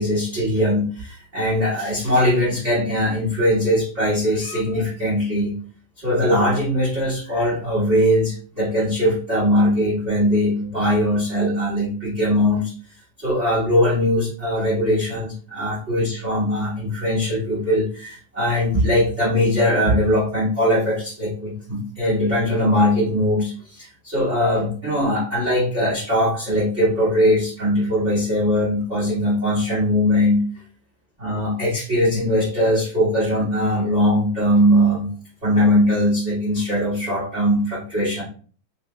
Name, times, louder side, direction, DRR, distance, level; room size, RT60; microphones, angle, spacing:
voice 1, 0.0-5.6 6.0-12.7 13.2-30.6 31.2-35.1 35.4-38.2, equal, 45° right, -6 dB, 0.9 m, -20 dB
6.4 x 2.9 x 2.2 m, 0.42 s
omnidirectional pair, 4.2 m